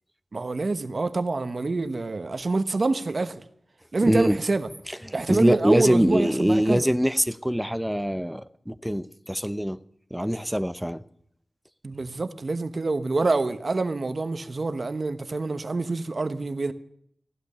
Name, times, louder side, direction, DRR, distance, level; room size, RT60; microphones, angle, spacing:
voice 1, 0.3-3.4 3.9-4.7 5.1-6.9 11.8-16.7, right 3 dB, 55° right, 1.1 m, -26 dB
voice 2, 4.0-4.4 4.9-9.8 10.1-11.0, equal, 5° right, 0.7 m, -24 dB
15.5 x 11.5 x 6.8 m
wide cardioid pair, 70°, 0 cm